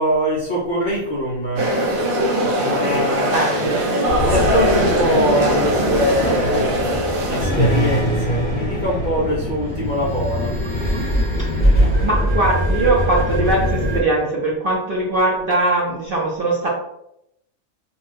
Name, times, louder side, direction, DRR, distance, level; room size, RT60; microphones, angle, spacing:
voice 1, 0.0-1.7 2.6-3.5 4.2-6.7 7.3-10.5, equal, 60° left, -5 dB, 0.5 m, -23 dB
sound 1, 1.6-7.5, right 1 dB, 80° right, 1.2 m, -20 dB
voice 2, 3.3-3.7 11.4-16.7, right 2 dB, 55° right, -4 dB, 0.6 m, -21 dB
sound 2, 4.1-14.0, equal, 25° left, 1.1 m, -22 dB
sound 3, 5.7-12.1, left 1 dB, 15° right, 0.5 m, -35 dB
2.5 x 2.2 x 3.3 m, 0.80 s
omnidirectional pair, 1.4 m